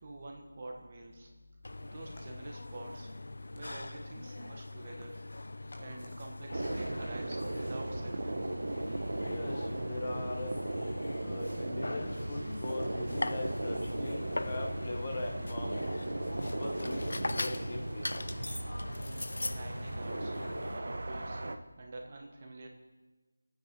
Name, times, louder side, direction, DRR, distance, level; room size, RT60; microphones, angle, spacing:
voice 1, 0.0-1.3 1.8-3.1 3.5-5.2 5.8-8.5 19.4-21.4 21.8-22.7, right 2 dB, 20° right, 2 dB, 1.2 m, -47 dB
sound 1, 1.6-20.8, left 2 dB, 55° left, 0.5 m, -41 dB
sound 2, 6.5-21.5, right 2 dB, 55° right, 1.0 m, -37 dB
voice 2, 9.2-10.5 11.2-15.8 16.4-18.3, left 2 dB, 20° left, 1 dB, 1.0 m, -40 dB
26.0 x 9.2 x 5.2 m, 1.2 s
figure-of-eight pair, 180°, 0 cm